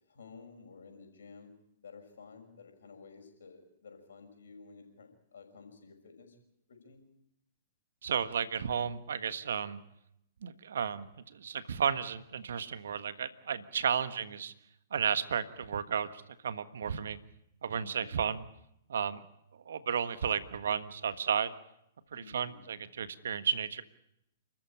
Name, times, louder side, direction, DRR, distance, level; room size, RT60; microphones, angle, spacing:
voice 1, 0.1-1.5 1.8-6.4 6.7-7.1 14.0-14.3 17.8-18.2 22.1-22.7, left 5 dB, 70° left, 5 dB, 6.1 m, -53 dB
voice 2, 8.0-9.8 10.4-14.5 14.9-17.2 17.6-18.4 18.9-19.2 19.6-21.5 22.1-23.8, right 7 dB, 65° right, 12 dB, 1.4 m, -33 dB
30.0 x 14.0 x 8.8 m, 0.80 s
figure-of-eight pair, 110°, 0 cm